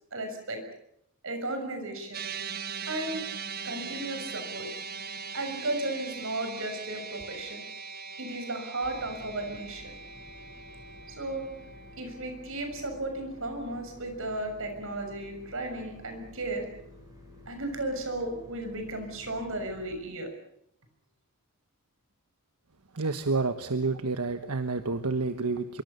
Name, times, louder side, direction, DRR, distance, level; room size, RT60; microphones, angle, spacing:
voice 1, 0.1-0.6 1.2-2.2 2.8-3.2 3.6-4.7 5.3-7.6 8.2-9.9 11.1-11.5 12.0-16.7 17.5-20.3, right 2 dB, 65° right, 6 dB, 6.5 m, -34 dB
sound 1, 2.1-14.6, right 5 dB, 45° right, 1.4 m, -41 dB
sound 2, 8.8-19.9, left 1 dB, 15° right, 7.1 m, -51 dB
voice 2, 22.9-25.8, right 3 dB, 85° right, 9 dB, 1.3 m, -29 dB
25.0 x 24.0 x 6.9 m, 0.75 s
head